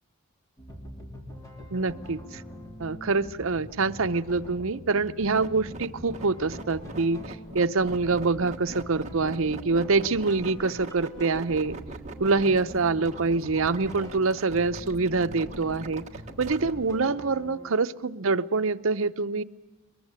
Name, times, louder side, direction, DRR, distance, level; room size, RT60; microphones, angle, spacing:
sound 1, 0.6-17.9, equal, 15° left, 3.4 m, -44 dB
voice 1, 1.7-2.4 2.8-11.8 12.2-16.0 16.4-19.4, right 3 dB, 70° right, 9 dB, 0.8 m, -25 dB
sound 2, 5.1-16.7, right 2 dB, 35° right, 1.5 m, -41 dB
22.5 x 21.5 x 9.0 m, 1.1 s
head